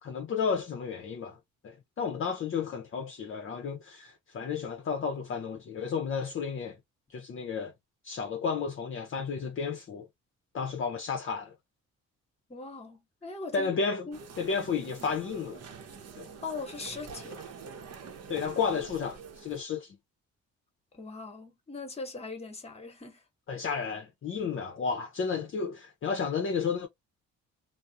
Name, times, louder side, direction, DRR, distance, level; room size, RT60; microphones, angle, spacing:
voice 1, 0.0-1.4 1.6-6.7 7.1-7.7 8.0-10.1 10.5-11.5 13.5-14.0 14.4-15.6 16.2-16.3 18.3-20.0 23.5-26.9, left 5 dB, 45° left, 0.6 m, -32 dB
voice 2, 12.5-13.7 14.1-14.2 16.4-17.5 20.9-23.2, left 3 dB, 20° left, 1.0 m, -40 dB
sound 1, 14.1-19.6, right 5 dB, 55° right, 0.8 m, -46 dB
2.3 x 2.0 x 2.6 m
cardioid pair, 90°, 30 cm